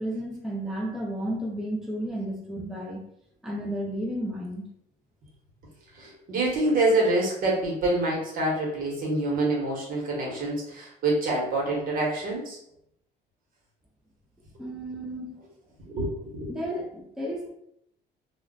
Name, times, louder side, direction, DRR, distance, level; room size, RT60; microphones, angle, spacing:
voice 1, 0.0-3.0 3.4-4.7 14.6-15.4 16.5-17.5, right 1 dB, ahead, -2 dB, 0.5 m, -32 dB
voice 2, 6.0-12.6 15.9-16.5, right 2 dB, 55° right, -2 dB, 1.2 m, -26 dB
2.3 x 2.2 x 3.8 m, 0.75 s
cardioid pair, 110°, 17 cm